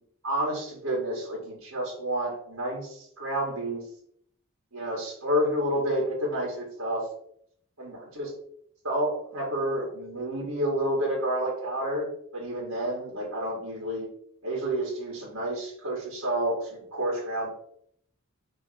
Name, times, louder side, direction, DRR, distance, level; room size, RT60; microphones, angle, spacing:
voice 1, 0.2-3.8 4.7-7.0 7.8-8.3 8.8-14.1 14.4-17.5, right 1 dB, 85° right, -4 dB, 2.8 m, -29 dB
6.2 x 4.4 x 4.7 m, 0.67 s
head